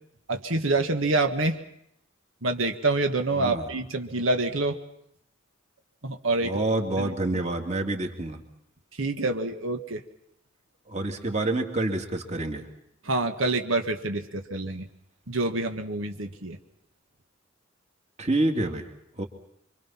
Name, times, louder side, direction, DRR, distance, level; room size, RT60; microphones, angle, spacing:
voice 1, 0.3-1.6 2.4-4.8 6.0-6.6 7.0-7.4 9.0-10.0 13.0-14.9 15.3-16.6, right 2 dB, 80° right, 5 dB, 1.7 m, -27 dB
voice 2, 3.3-3.7 6.4-8.4 10.9-12.7 18.2-18.9 19.2-19.3, right 2 dB, 35° right, 4 dB, 2.8 m, -27 dB
26.5 x 25.0 x 5.9 m, 0.74 s
head